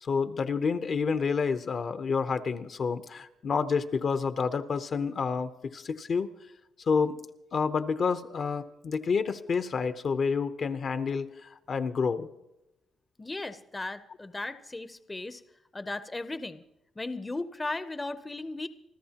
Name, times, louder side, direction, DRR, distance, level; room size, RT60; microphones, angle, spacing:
voice 1, 0.0-6.3 6.9-7.2 7.5-11.3 11.7-12.3, left 5 dB, 50° left, 10 dB, 0.8 m, -29 dB
voice 2, 13.2-15.4 15.7-16.6 17.0-18.7, left 2 dB, 20° left, 11 dB, 0.7 m, -36 dB
27.0 x 13.5 x 2.9 m, 0.91 s
cardioid pair, 90°, 0 cm